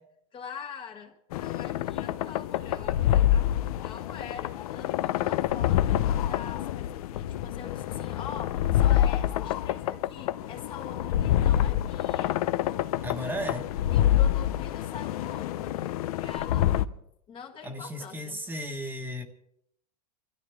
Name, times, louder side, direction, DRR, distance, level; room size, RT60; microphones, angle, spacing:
voice 1, 0.3-12.4 13.9-16.7 17.3-18.4, left 7 dB, 25° left, 1.5 m, -44 dB
sound 1, 1.3-16.9, left 12 dB, 75° left, 0.8 m, -27 dB
voice 2, 13.0-13.7 17.6-19.2, equal, 10° right, 1.4 m, -35 dB
29.0 x 13.5 x 3.5 m
supercardioid pair, 150°, 19 cm